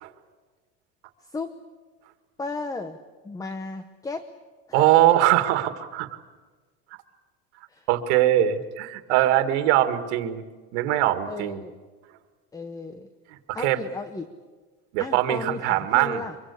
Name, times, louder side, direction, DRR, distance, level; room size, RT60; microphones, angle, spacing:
voice 1, 1.3-1.6 2.4-3.0 3.2-4.3 4.9-5.2 7.7-7.9 11.2-11.7 12.5-13.1 13.5-14.3 15.0-16.4, left 3 dB, 10° left, 11 dB, 0.9 m, -34 dB
voice 2, 4.7-6.1 7.9-10.4 10.7-11.6 13.5-13.8 14.9-16.2, right 14 dB, 80° right, 9 dB, 2.1 m, -22 dB
24.5 x 23.5 x 8.4 m, 1.4 s
cardioid pair, 155°, 34 cm